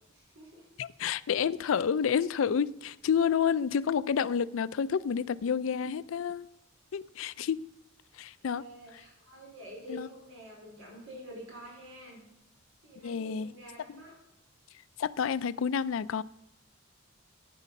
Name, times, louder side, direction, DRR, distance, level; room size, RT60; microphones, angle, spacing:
voice 1, 0.1-0.7 8.1-12.2 12.8-14.2, equal, 80° right, 4.5 m, -48 dB
voice 2, 0.8-6.5 6.9-7.6 8.2-8.6 9.9-10.1 13.0-13.5 13.9-14.0 15.0-16.2, left 7 dB, 75° left, 0.4 m, -29 dB
12.0 x 9.2 x 5.3 m
head